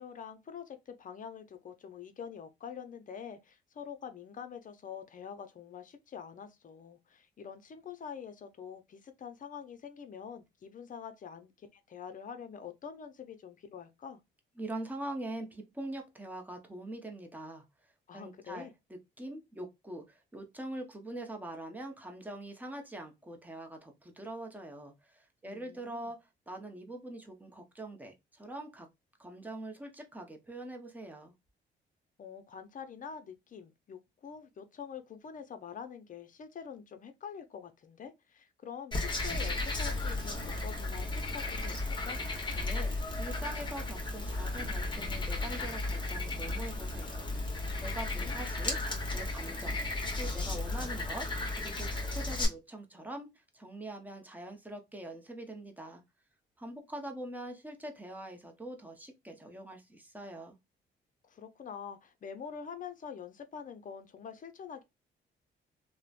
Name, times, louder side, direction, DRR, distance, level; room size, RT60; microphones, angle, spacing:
voice 1, 0.0-14.2 18.1-18.7 25.4-26.1 32.2-41.8 42.0-42.2 47.7-48.4 61.2-64.8, left 7 dB, 40° left, 0.6 m, -46 dB
voice 2, 14.6-17.7 18.1-28.9 29.2-31.3 42.5-48.8 49.1-49.8 50.2-56.0 56.6-60.6, right 1 dB, 10° right, 0.7 m, -43 dB
Frog, 38.9-52.5, left 2 dB, 25° left, 1.0 m, -34 dB
3.0 x 2.1 x 2.4 m
cardioid pair, 90°, 20 cm